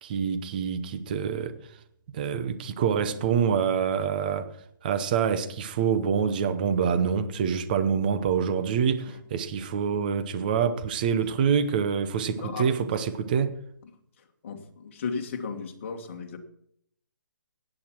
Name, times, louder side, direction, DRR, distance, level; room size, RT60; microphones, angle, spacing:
voice 1, 0.0-1.6 2.1-4.5 4.8-13.5, right 7 dB, 25° right, 12 dB, 0.8 m, -26 dB
voice 2, 12.3-12.7 14.2-16.4, left 5 dB, 35° left, 4 dB, 1.7 m, -35 dB
16.0 x 8.8 x 4.5 m, 0.71 s
hypercardioid pair, 170°, 11 cm